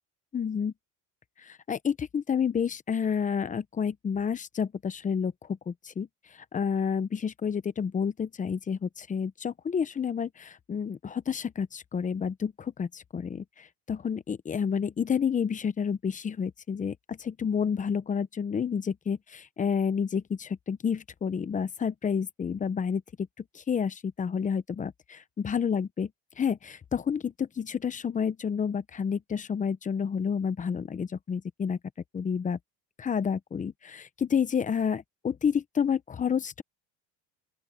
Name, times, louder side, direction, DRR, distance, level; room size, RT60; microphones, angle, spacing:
voice 1, 0.3-0.7 1.4-6.1 6.5-23.0 23.5-26.1 26.4-31.8 32.1-32.6 33.0-36.6, left 7 dB, 25° left, 1.0 m, -30 dB
open air
cardioid pair, 125°, 33 cm